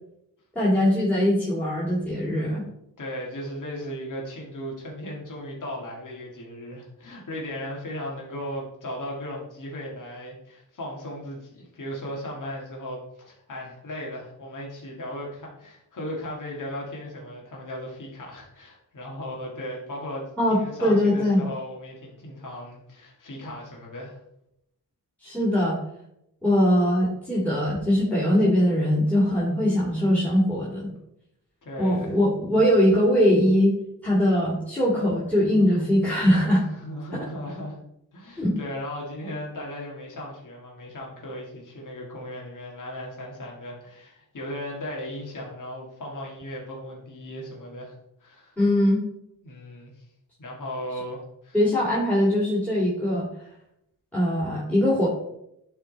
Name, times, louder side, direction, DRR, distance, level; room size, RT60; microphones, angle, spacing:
voice 1, 0.6-2.6 20.4-21.4 25.2-25.8 26.4-30.9 31.8-33.7 34.0-36.7 37.1-37.3 38.4-38.6 48.6-49.0 51.5-53.3 54.1-55.1, equal, 5° left, -6 dB, 2.2 m, -21 dB
voice 2, 3.0-24.2 31.6-32.2 36.7-37.8 38.1-48.6 49.4-50.0 50.4-51.6, equal, 50° left, -3 dB, 2.2 m, -36 dB
10.5 x 3.9 x 4.0 m, 0.81 s
wide cardioid pair, 115°, 39 cm